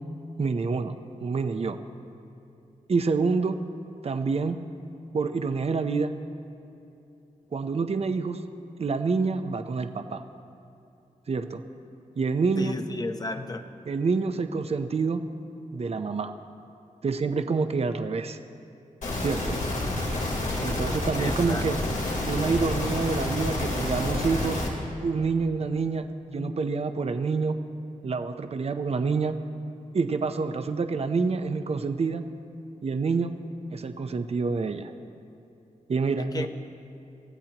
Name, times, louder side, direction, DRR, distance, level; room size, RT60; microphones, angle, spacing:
voice 1, 0.4-0.9 1.2-1.8 2.9-3.6 4.0-4.6 5.1-6.1 7.5-8.4 8.8-10.2 11.3-11.6 12.2-12.8 13.9-15.2 15.7-16.3 17.0-18.4 19.2-19.6 20.6-21.8 22.2-24.6 25.0-27.6 28.0-29.4 29.9-32.2 32.8-33.3 33.7-34.9 35.9-36.5, right 4 dB, 50° right, 8 dB, 0.7 m, -27 dB
voice 2, 12.6-13.6 21.2-21.6 36.2-36.5, left 2 dB, 30° left, 7 dB, 0.9 m, -33 dB
sound 1, 19.0-24.7, left 1 dB, 80° left, 3.9 m, -29 dB
27.5 x 15.0 x 3.0 m, 2.8 s
wide cardioid pair, 110°, 14 cm